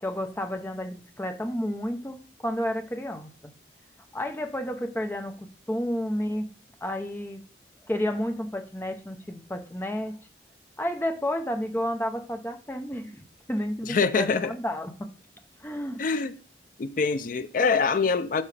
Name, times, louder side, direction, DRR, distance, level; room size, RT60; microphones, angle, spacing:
voice 1, 0.0-3.5 4.1-6.5 6.8-7.4 7.9-10.2 10.8-15.1 15.6-16.0, equal, 10° left, 0.7 m, -31 dB
voice 2, 13.9-14.5 16.0-16.3 16.8-18.4, left 4 dB, 45° left, 0.4 m, -24 dB
8.5 x 4.7 x 3.3 m
head